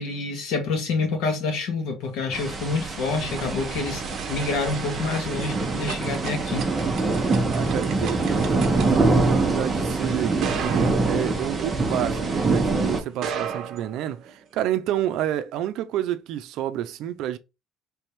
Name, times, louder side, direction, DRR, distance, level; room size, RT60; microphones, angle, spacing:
voice 1, 0.0-4.0 4.3-6.7, left 4 dB, 70° left, 1.7 m, -27 dB
sound 1, 2.1-12.5 13.1-14.6, right 7 dB, 50° right, 0.9 m, -36 dB
sound 2, 2.3-13.0, right 3 dB, 15° right, 0.9 m, -24 dB
voice 2, 7.5-17.4, right 12 dB, 65° right, 0.5 m, -29 dB
3.5 x 3.4 x 4.3 m
cardioid pair, 160°, 0 cm